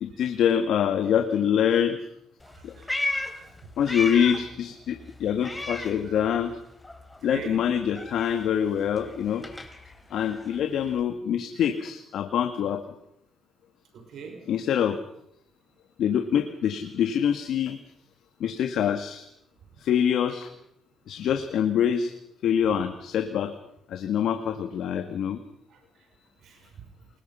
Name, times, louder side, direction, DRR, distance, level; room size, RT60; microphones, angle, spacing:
voice 1, 0.0-2.0 2.6-2.7 3.8-6.5 7.2-9.5 10.1-12.8 14.5-15.0 16.0-17.8 18.4-19.3 19.8-20.5 21.1-22.1 22.4-23.5 23.9-25.4, left 8 dB, 75° left, 7 dB, 1.8 m, -25 dB
Meow, 2.4-4.6 4.9-6.6 6.8-11.0, left 2 dB, 15° left, 4.0 m, -35 dB
voice 2, 2.5-3.4 7.3-7.6 13.9-14.4 25.7-25.8 26.4-26.6, right 6 dB, 70° right, 4 dB, 5.7 m, -42 dB
28.5 x 21.0 x 5.7 m, 0.79 s
cardioid pair, 90°, 0 cm